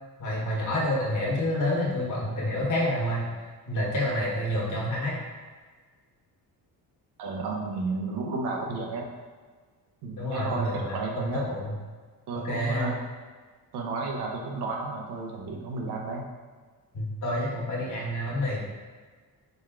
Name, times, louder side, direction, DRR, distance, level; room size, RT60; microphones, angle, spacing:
voice 1, 0.2-3.3 3.7-5.2 10.2-11.7 12.3-12.9 16.9-18.6, left 1 dB, 50° left, -4 dB, 1.4 m, -28 dB
voice 2, 7.2-9.1 10.0-11.5 12.3-13.0 13.7-16.3, right 3 dB, 85° right, 0 dB, 0.9 m, -32 dB
5.3 x 2.2 x 3.7 m, 1.5 s
cardioid pair, 115°, 39 cm